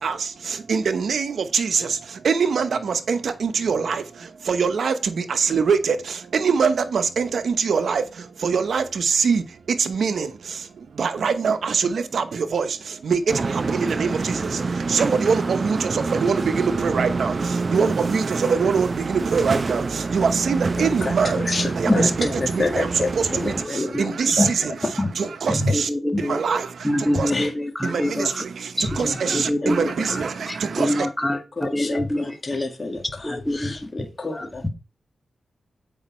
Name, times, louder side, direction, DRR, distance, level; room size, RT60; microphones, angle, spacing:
voice 1, 0.0-25.9 26.2-27.3 27.8-31.1, right 5 dB, 75° right, 0.9 m, -24 dB
sound 1, 13.3-23.7, right 4 dB, 50° right, 0.6 m, -26 dB
voice 2, 21.9-23.9 24.4-24.5 27.3-27.5 28.1-28.3 31.6-34.6, left 3 dB, 40° left, 1.8 m, -28 dB
voice 3, 25.5-26.4 26.8-28.3 28.8-29.9 30.5-32.4 33.2-33.7 34.3-34.7, left 1 dB, 10° left, 1.4 m, -24 dB
8.1 x 5.4 x 4.3 m
cardioid pair, 70°, 0 cm